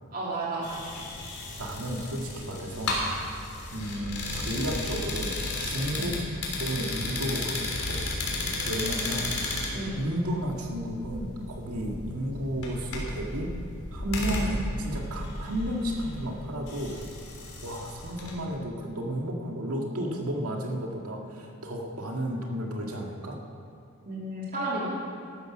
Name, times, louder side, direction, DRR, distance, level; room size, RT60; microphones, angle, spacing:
voice 1, 0.1-0.7 5.9-6.2 9.7-10.0 24.0-24.9, right 2 dB, 40° right, -5 dB, 2.8 m, -32 dB
sound 1, 0.6-18.3, left 2 dB, 85° left, 3.4 m, -34 dB
voice 2, 1.6-3.0 3.7-6.1 6.6-8.0 8.7-9.3 9.9-13.5 13.9-17.0 17.6-23.4, equal, 85° right, 0 dB, 2.0 m, -32 dB
13.5 x 12.5 x 6.0 m, 2.4 s
head